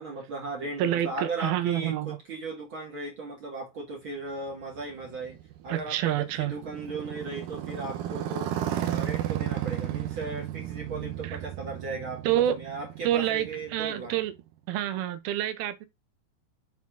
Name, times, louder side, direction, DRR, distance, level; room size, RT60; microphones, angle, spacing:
voice 1, 0.0-5.4 5.6-8.5 8.9-14.1, right 3 dB, 40° right, 2.2 m, -37 dB
voice 2, 0.8-2.2 5.7-6.5 11.2-11.4 12.3-12.6 13.0-14.3 14.7-15.9, right 12 dB, 90° right, 2.6 m, -27 dB
Motorcycle, 4.5-14.4, right 11 dB, 70° right, 2.2 m, -34 dB
7.1 x 4.6 x 3.8 m
omnidirectional pair, 4.4 m